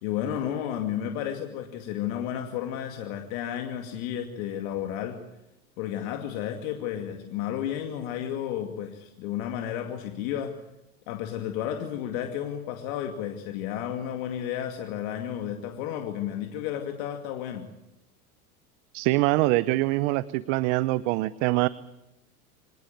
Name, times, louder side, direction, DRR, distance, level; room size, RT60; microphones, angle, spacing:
voice 1, 0.0-5.2 5.8-10.6 11.1-17.7, left 10 dB, 65° left, 5 dB, 2.5 m, -32 dB
voice 2, 18.9-21.7, right 19 dB, 55° right, 18 dB, 0.9 m, -24 dB
24.5 x 19.0 x 9.1 m, 0.89 s
hypercardioid pair, 95°, 43 cm